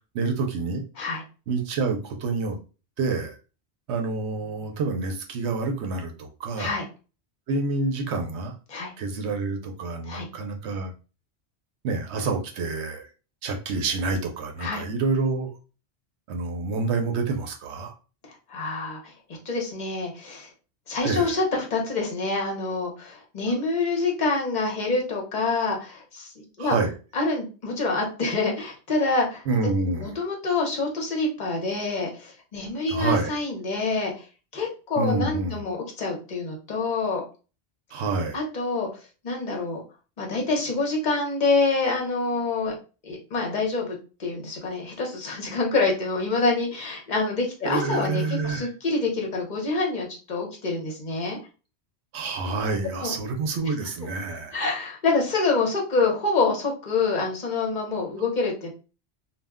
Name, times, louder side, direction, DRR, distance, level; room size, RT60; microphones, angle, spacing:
voice 1, 0.1-0.8 1.5-2.6 3.0-3.4 3.9-6.8 7.5-8.5 9.0-10.9 11.8-13.1 13.4-15.5 16.3-17.9 21.0-21.3 26.6-26.9 29.5-30.1 32.9-33.4 35.0-35.6 37.9-38.4 47.6-48.7 52.1-54.6, right 3 dB, 85° right, 0.9 m, -27 dB
voice 2, 18.5-19.1 19.5-20.5 20.9-26.8 27.1-29.4 30.0-34.2 34.5-37.2 38.3-38.9 39.2-39.8 40.2-42.7 43.0-51.4 53.0-53.1 54.5-58.7, left 3 dB, 45° left, 0.9 m, -26 dB
2.3 x 2.1 x 3.5 m
omnidirectional pair, 1.1 m